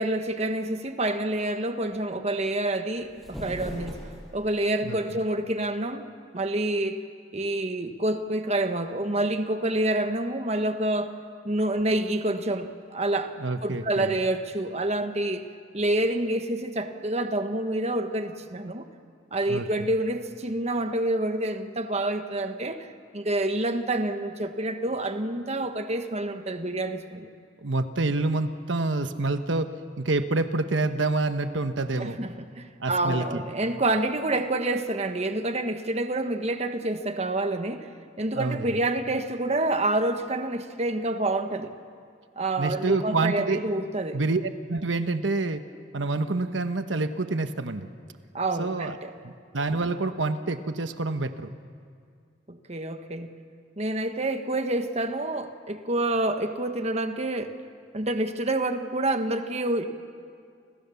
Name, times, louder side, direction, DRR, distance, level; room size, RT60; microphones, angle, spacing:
voice 1, 0.0-4.0 4.3-6.0 6.3-7.0 7.3-11.1 11.4-13.3 13.6-15.4 15.7-18.8 19.3-22.9 23.1-27.3 32.0-37.9 38.2-41.7 42.4-44.2 48.3-49.1 52.5-53.3 53.8-57.6 57.9-59.9, right 1 dB, 35° right, 7 dB, 1.3 m, -27 dB
sound 1, 2.9-4.5, equal, ahead, 6.7 m, -39 dB
voice 2, 13.4-14.1 19.5-19.9 27.6-29.7 30.0-32.2 32.8-33.4 38.3-38.7 42.6-43.6 44.1-44.4 44.7-45.6 45.9-47.9 48.6-49.0 49.2-51.5, right 3 dB, 85° right, 9 dB, 1.1 m, -27 dB
30.0 x 26.0 x 7.1 m, 2.2 s
head